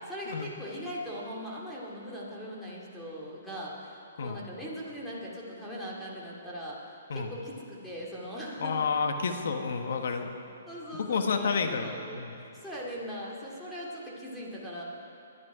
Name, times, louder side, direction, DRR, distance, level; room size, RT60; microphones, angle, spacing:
voice 1, 0.0-8.8 10.1-10.2 10.7-12.2 12.5-14.8, equal, ahead, -6 dB, 2.4 m, -40 dB
voice 2, 8.6-10.3 10.9-12.3, left 5 dB, 65° left, 5 dB, 1.3 m, -30 dB
22.5 x 10.5 x 4.9 m, 2.7 s
hypercardioid pair, 160°, 0 cm